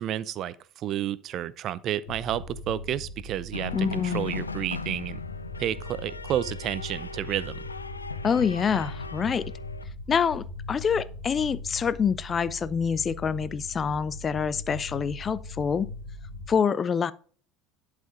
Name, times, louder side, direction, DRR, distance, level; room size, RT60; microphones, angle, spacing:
voice 1, 0.0-5.2 5.6-7.6, right 11 dB, 45° right, 0.5 m, -31 dB
sound 1, 2.1-16.5, left 1 dB, 70° left, 1.4 m, -40 dB
sound 2, 3.5-9.8, left 4 dB, 90° left, 0.4 m, -38 dB
voice 2, 3.7-4.3 8.2-9.5 10.1-15.9 16.5-17.1, left 6 dB, 30° left, 0.4 m, -26 dB
11.5 x 5.0 x 3.8 m
figure-of-eight pair, 70°, 0 cm